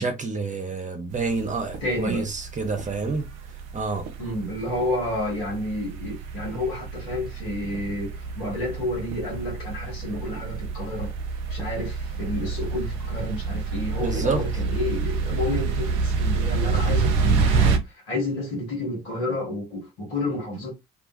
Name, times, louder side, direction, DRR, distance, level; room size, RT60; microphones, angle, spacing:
voice 1, 0.0-3.3 3.7-4.1 14.0-14.4, right 4 dB, 25° right, 0.8 m, -28 dB
sound 1, 1.1-17.8, right 4 dB, 55° right, 0.6 m, -28 dB
voice 2, 1.8-2.2 4.2-11.1 11.5-20.7, left 1 dB, 75° left, 1.3 m, -30 dB
2.5 x 2.3 x 2.6 m
figure-of-eight pair, 45°, 30 cm